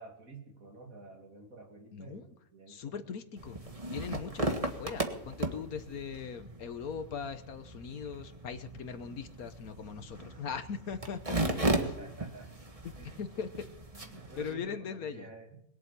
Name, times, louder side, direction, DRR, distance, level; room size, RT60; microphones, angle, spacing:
voice 1, 0.0-3.0 4.2-4.4 11.6-12.5 13.0-13.2 14.0-15.6, right 4 dB, 70° right, 2 dB, 3.2 m, -50 dB
voice 2, 1.9-2.2 2.7-3.6 3.9-11.8 12.8-13.5 14.0-14.1 14.4-15.3, left 6 dB, 85° left, 9 dB, 1.6 m, -40 dB
sound 1, 3.4-14.5, right 2 dB, 25° right, 1.6 m, -36 dB
21.5 x 8.0 x 8.3 m, 0.76 s
omnidirectional pair, 1.5 m